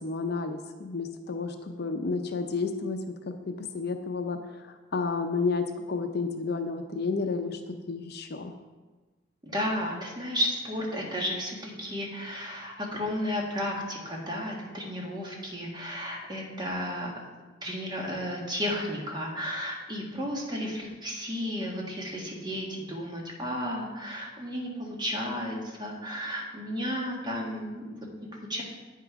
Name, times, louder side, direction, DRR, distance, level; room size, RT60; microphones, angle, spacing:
voice 1, 0.0-3.0 3.3-8.5, left 4 dB, 60° left, 6 dB, 0.6 m, -31 dB
voice 2, 9.4-17.1 17.6-27.8 28.5-28.6, equal, 25° right, -1 dB, 1.6 m, -33 dB
9.0 x 5.7 x 4.7 m, 1.3 s
head